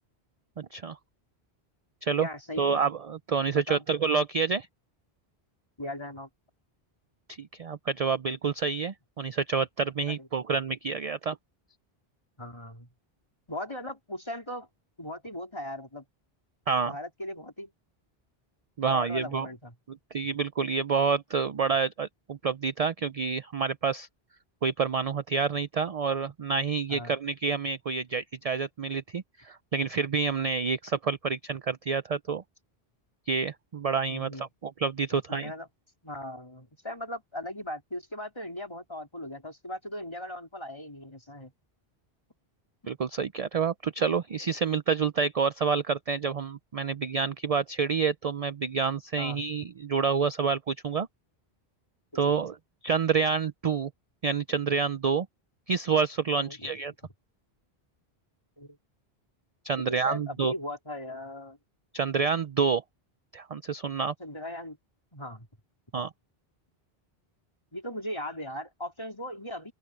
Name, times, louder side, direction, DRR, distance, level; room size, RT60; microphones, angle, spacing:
voice 1, 0.6-1.0 2.0-2.3 2.6-4.7 7.4-11.4 16.7-16.9 18.8-19.5 19.9-24.1 24.6-32.4 33.3-35.5 42.9-51.1 52.1-52.6 52.8-53.9 54.2-55.3 55.7-56.9 59.6-60.5 61.9-62.8 63.3-64.1 65.9-66.1, right 5 dB, 45° right, 0.6 m, -28 dB
voice 2, 2.2-2.8 3.5-3.8 5.8-6.3 10.1-10.3 12.4-12.9 13.5-14.7 15.0-16.0 16.9-17.7 18.9-19.7 26.9-27.2 34.1-34.5 35.3-35.7 36.0-41.5 49.2-49.4 56.3-56.7 58.6-58.8 59.9-61.6 64.2-64.8 65.1-65.5 67.7-69.7, left 1 dB, 25° left, 4.1 m, -38 dB
open air
omnidirectional pair, 1.1 m